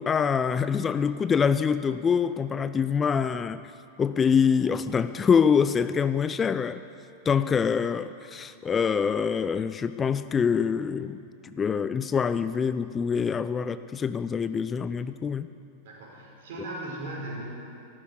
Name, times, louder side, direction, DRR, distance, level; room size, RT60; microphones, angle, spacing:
voice 1, 0.0-3.6 4.0-6.8 7.3-15.5, left 6 dB, 20° left, 13 dB, 0.4 m, -25 dB
voice 2, 15.8-17.4, right 1 dB, 55° right, -2 dB, 4.7 m, -37 dB
14.5 x 12.0 x 8.1 m, 2.7 s
figure-of-eight pair, 90°, 0 cm